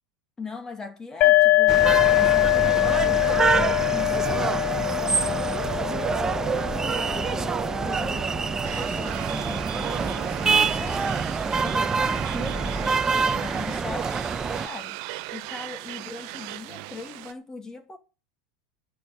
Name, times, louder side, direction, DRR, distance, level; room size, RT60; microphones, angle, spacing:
voice 1, 0.4-6.0 6.7-8.3 8.6-11.3 11.6-13.0 13.3-15.0 15.3-18.0, left 4 dB, 20° left, 2.4 m, -40 dB
sound 1, 1.2-8.7, left 17 dB, 45° left, 1.0 m, -23 dB
sound 2, 1.7-14.7, right 5 dB, 20° right, 0.8 m, -26 dB
sound 3, 8.6-17.3, right 17 dB, 60° right, 0.7 m, -37 dB
10.5 x 6.4 x 8.0 m
hypercardioid pair, 90°, 3 cm